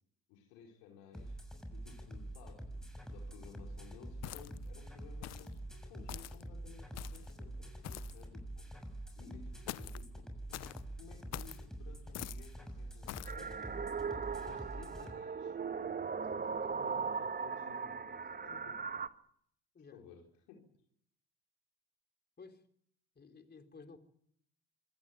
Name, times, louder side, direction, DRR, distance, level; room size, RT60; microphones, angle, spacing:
voice 1, 0.3-1.4 1.7-5.6 5.9-7.7 8.1-8.7 9.1-10.2 10.6-15.6 16.2-18.8 19.9-20.7, left 6 dB, 75° left, 4.4 m, -57 dB
sound 1, 1.1-15.1, right 1 dB, ahead, 7.2 m, -46 dB
sound 2, 4.2-4.7 5.2-5.5 6.1-6.4 6.9-7.3 7.8-8.2 9.7-10.0 10.5-10.8 11.3-11.6 12.1-12.5 13.1-13.4, left 15 dB, 55° left, 0.9 m, -45 dB
sound 3, 13.2-19.1, right 5 dB, 30° right, 1.5 m, -38 dB
voice 2, 23.2-24.0, left 4 dB, 30° left, 3.9 m, -55 dB
26.0 x 16.0 x 9.4 m
hypercardioid pair, 55°, 31 cm